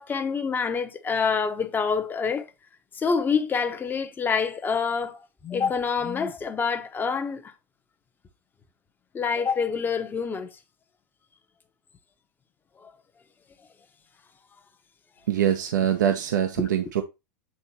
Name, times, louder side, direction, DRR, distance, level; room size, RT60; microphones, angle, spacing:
voice 1, 0.0-2.5 2.9-7.5 9.1-10.6 12.8-12.9 16.6-16.7, left 5 dB, 20° left, 0.9 m, -27 dB
voice 2, 15.3-17.0, right 10 dB, 85° right, 0.9 m, -23 dB
8.7 x 3.7 x 2.9 m
hypercardioid pair, 110°, 10 cm